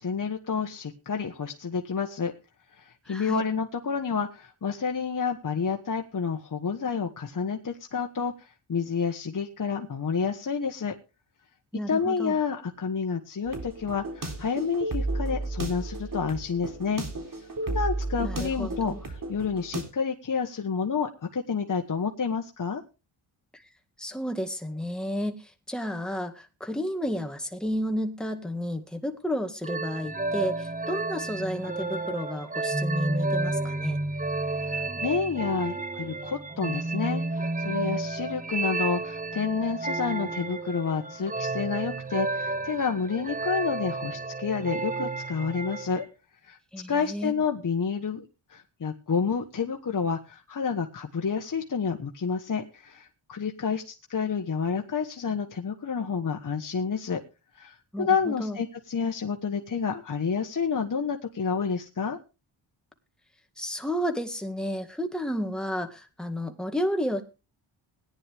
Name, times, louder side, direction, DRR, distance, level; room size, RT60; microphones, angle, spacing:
voice 1, 0.0-2.3 2.8-8.3 8.7-10.9 11.9-17.0 17.6-19.0 19.3-22.8 34.6-46.1 46.4-46.6 46.9-57.2 57.6-62.2, left 5 dB, 40° left, 4 dB, 1.4 m, -29 dB
voice 2, 3.1-3.5 11.7-12.3 18.2-19.0 23.5-23.6 24.0-34.0 46.7-47.4 57.9-58.6 63.6-67.2, equal, ahead, 5 dB, 1.8 m, -32 dB
sound 1, 13.5-19.8, right 2 dB, 45° right, 3.7 m, -33 dB
sound 2, 29.6-46.1, right 2 dB, 15° right, 1.0 m, -31 dB
18.0 x 10.0 x 3.5 m, 0.30 s
wide cardioid pair, 100°, 48 cm